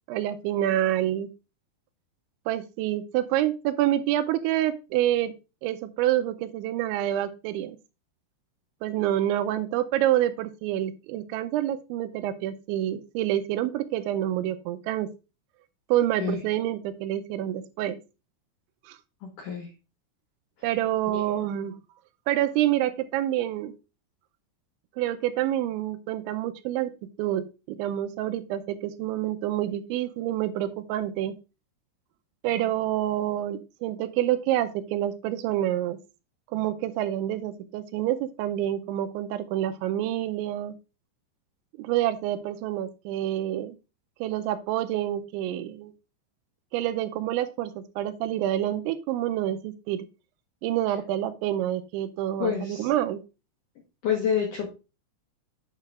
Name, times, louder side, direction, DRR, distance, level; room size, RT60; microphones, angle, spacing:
voice 1, 0.1-1.3 2.5-5.3 5.6-7.8 8.8-15.1 15.9-18.0 18.9-19.0 20.6-21.8 22.3-23.7 25.0-26.9 27.2-31.4 32.4-36.0 36.5-40.8 41.8-43.8 44.2-45.9 46.7-50.1 50.6-53.2, right 12 dB, 85° right, 11 dB, 2.8 m, -27 dB
voice 2, 19.2-19.7 21.1-21.2 52.4-52.9 54.0-54.7, left 7 dB, 75° left, 1 dB, 1.9 m, -28 dB
8.5 x 7.2 x 2.4 m, 0.29 s
omnidirectional pair, 5.5 m